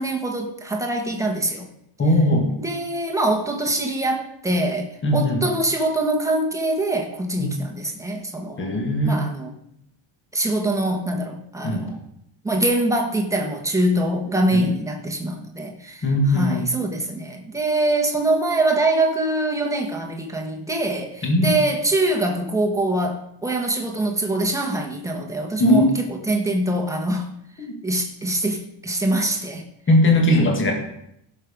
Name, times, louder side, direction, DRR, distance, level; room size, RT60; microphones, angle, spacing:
voice 1, 0.0-1.7 2.6-9.5 10.3-12.0 12.4-27.3 27.6-29.6, right 1 dB, 5° right, 1 dB, 1.5 m, -24 dB
voice 2, 2.0-2.5 5.0-5.4 7.4-7.5 8.6-9.3 11.6-11.9 14.5-14.6 16.0-16.6 21.2-21.5 25.6-25.9 27.6-27.7 29.9-30.7, left 1 dB, 25° left, 2 dB, 2.1 m, -19 dB
16.0 x 6.7 x 5.3 m, 0.76 s
cardioid pair, 175°, 46 cm